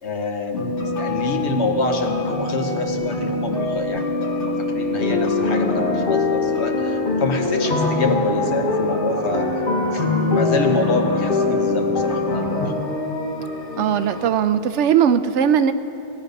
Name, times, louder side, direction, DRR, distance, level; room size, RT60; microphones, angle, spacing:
voice 1, 0.0-9.5 9.9-12.6, left 3 dB, 70° left, 4 dB, 1.4 m, -26 dB
sound 1, 0.5-14.3, left 2 dB, 90° left, 1.8 m, -26 dB
sound 2, 5.0-12.7, left 3 dB, 50° left, 1.2 m, -23 dB
voice 2, 13.8-15.7, right 8 dB, 90° right, 11 dB, 0.9 m, -18 dB
18.0 x 10.0 x 5.3 m, 2.9 s
omnidirectional pair, 1.2 m